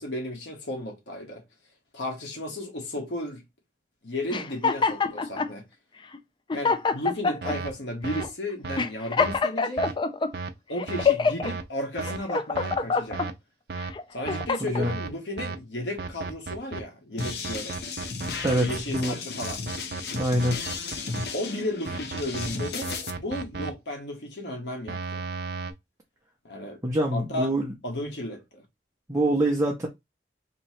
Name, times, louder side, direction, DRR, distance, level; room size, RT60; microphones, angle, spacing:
voice 1, 0.0-1.4 1.9-3.4 4.0-5.6 6.5-9.8 10.7-13.2 14.1-17.8 18.5-19.6 21.3-25.2 26.4-26.8 27.1-27.5 27.8-28.6, left 1 dB, 85° left, 1.3 m, -34 dB
sound 1, 4.3-5.5 6.1-6.2 6.5-7.6 8.1-8.3 8.8-10.3 10.8-11.5 12.0-13.3 13.8-14.8, left 4 dB, 25° left, 0.4 m, -25 dB
sound 2, 7.4-7.7 8.0-8.3 8.6-8.8 9.2-9.4 9.8-9.9 10.3-10.5 10.9-11.1 11.4-11.6 12.0-12.2 12.6-12.8 13.1-13.3 13.7-13.9 14.3-14.5 14.8-15.1 15.4-15.6 16.0-16.8 17.2-19.0 19.4-21.3 21.9-23.7 24.9-25.7, right 4 dB, 60° right, 0.5 m, -34 dB
voice 2, 14.6-15.0 18.4-19.2 20.2-20.6 26.8-27.7 29.1-29.9, right 1 dB, 20° right, 0.7 m, -25 dB
sound 3, 17.2-23.1, left 4 dB, 65° left, 0.7 m, -34 dB
3.0 x 2.9 x 4.3 m
head